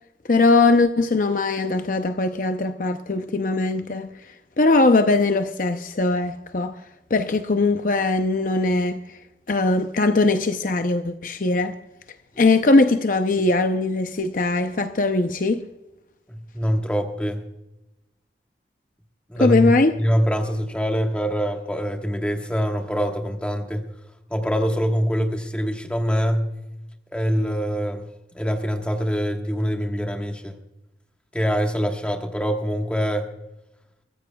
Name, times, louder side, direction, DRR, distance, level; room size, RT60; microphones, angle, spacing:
voice 1, 0.3-4.1 4.6-6.8 7.1-9.0 9.5-11.8 12.4-15.6 19.4-20.0, left 3 dB, 50° left, 0.7 m, -20 dB
voice 2, 16.3-17.4 19.3-23.9 24.3-26.6 27.1-28.1 28.3-30.5 31.3-33.3, equal, 5° left, 1.4 m, -24 dB
23.5 x 15.0 x 2.3 m
head